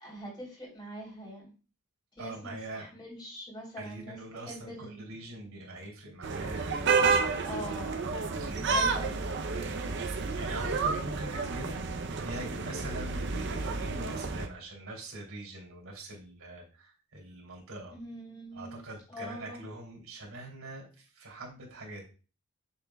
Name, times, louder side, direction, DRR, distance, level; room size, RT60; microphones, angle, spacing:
voice 1, 0.0-1.5 2.2-5.0 7.4-8.0 8.7-9.2 17.9-18.8 19.1-19.6, equal, 20° left, -3 dB, 3.4 m, -43 dB
voice 2, 2.2-2.9 3.8-7.7 8.3-8.9 9.5-11.8 12.2-18.0 18.5-22.0, right 1 dB, 80° right, -1 dB, 3.1 m, -43 dB
sound 1, 6.2-14.5, right 4 dB, 55° right, 0.7 m, -30 dB
7.3 x 7.2 x 2.3 m, 0.35 s
head